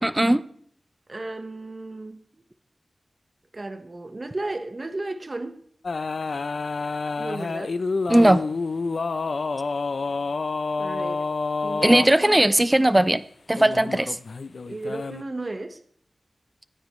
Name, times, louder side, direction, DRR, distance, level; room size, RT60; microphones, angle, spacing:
voice 1, 0.0-0.4 8.1-8.4 11.8-13.2 13.5-14.2, right 1 dB, 20° right, 0.7 m, -18 dB
voice 2, 1.1-2.2 3.5-5.6 7.2-7.8 10.8-11.3 11.6-12.3 14.7-15.8, right 2 dB, 45° right, 1.3 m, -34 dB
sound 1, 5.8-12.1 13.5-15.2, left 4 dB, 75° left, 0.6 m, -28 dB
25.0 x 9.9 x 3.2 m
wide cardioid pair, 65°, 0 cm